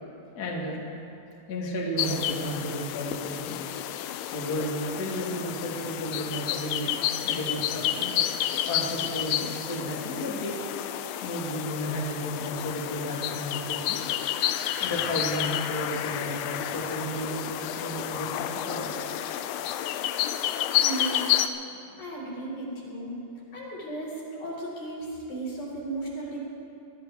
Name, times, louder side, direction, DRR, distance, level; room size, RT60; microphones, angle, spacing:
voice 1, 0.3-0.9 1.5-3.5 4.3-6.9 7.2-8.1 8.6-10.6 11.2-14.0 14.8-18.9 21.9-22.0, equal, 40° left, -3 dB, 1.5 m, -33 dB
sound 1, 2.0-21.5, left 11 dB, 85° left, 2.6 m, -30 dB
voice 2, 20.8-21.6 22.0-23.2 23.5-26.4, right 2 dB, 60° left, -6 dB, 6.0 m, -35 dB
23.5 x 14.0 x 3.5 m, 2.7 s
omnidirectional pair, 4.4 m